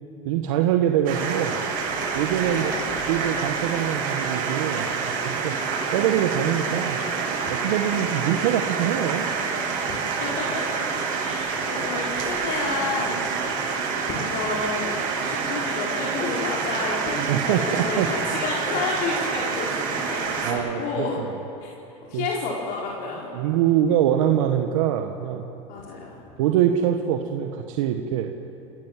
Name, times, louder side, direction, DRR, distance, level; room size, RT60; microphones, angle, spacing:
voice 1, 0.2-1.6 2.1-2.7 3.1-5.6 5.9-7.0 7.5-9.3 17.2-18.1 20.4-21.0 22.1-22.2 23.3-25.5 26.4-28.3, right 10 dB, 80° right, 4 dB, 1.5 m, -24 dB
sound 1, 1.1-20.5, right 5 dB, 65° right, 7.6 m, -27 dB
voice 2, 2.4-2.9 7.9-8.2 9.8-10.6 11.2-21.2 21.6-21.7 22.1-23.3 25.7-26.2, left 4 dB, 65° left, -4 dB, 4.8 m, -31 dB
29.0 x 17.5 x 7.6 m, 2.8 s
supercardioid pair, 90°, 16 cm